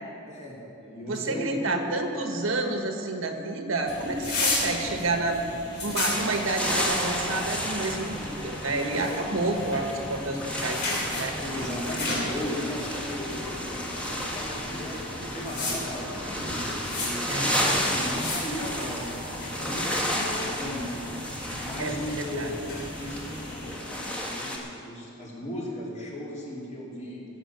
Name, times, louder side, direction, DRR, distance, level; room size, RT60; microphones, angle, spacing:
voice 1, 0.3-1.9 11.4-17.2 17.8-21.2 21.6-27.3, equal, 35° left, -4 dB, 3.1 m, -36 dB
voice 2, 1.1-5.4 5.8-11.3 17.3-17.7 21.8-22.5, right 2 dB, 85° right, 5 dB, 1.4 m, -29 dB
sound 1, 3.8-23.8, left 2 dB, 55° left, 3.0 m, -35 dB
sound 2, 6.1-24.6, equal, 5° left, 1.5 m, -32 dB
16.5 x 7.5 x 6.8 m, 2.9 s
head